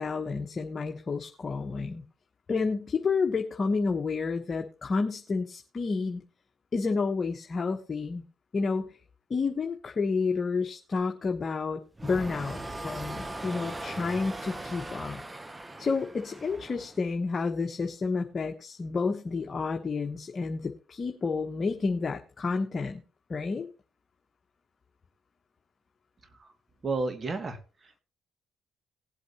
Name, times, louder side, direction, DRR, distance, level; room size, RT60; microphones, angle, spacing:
voice 1, 0.0-2.0 2.5-6.2 6.7-8.2 8.5-8.9 9.3-15.2 15.8-23.0 23.3-23.7, left 4 dB, 40° left, 3 dB, 1.2 m, -30 dB
sound 1, 12.0-17.1, right 1 dB, 20° right, 0.8 m, -39 dB
voice 2, 26.8-28.0, right 3 dB, 40° right, 8 dB, 2.2 m, -32 dB
19.0 x 8.0 x 2.9 m, 0.33 s
supercardioid pair, 60°, 0 cm